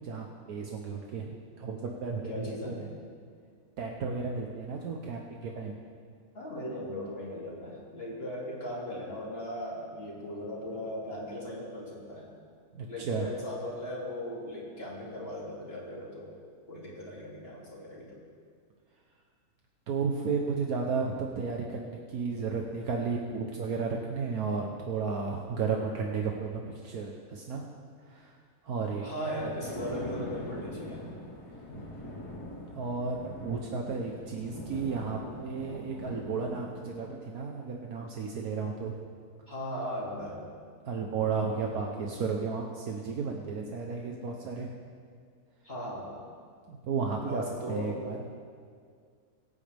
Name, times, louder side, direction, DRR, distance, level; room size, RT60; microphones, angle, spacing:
voice 1, 0.0-2.9 3.8-5.7 12.7-13.3 19.9-27.7 28.1-28.3 28.6-29.1 32.7-39.0 40.9-44.7 46.7-48.2, right 5 dB, 70° right, 0 dB, 1.4 m, -33 dB
voice 2, 2.3-2.8 6.3-12.3 12.9-16.3 16.7-18.2 29.0-31.0 39.5-40.4 45.6-46.1 47.3-48.0, left 1 dB, 40° left, -6 dB, 3.0 m, -38 dB
Thunder, 29.3-37.0, left 1 dB, 85° left, 2.4 m, -43 dB
22.5 x 9.1 x 3.5 m, 2.1 s
omnidirectional pair, 1.6 m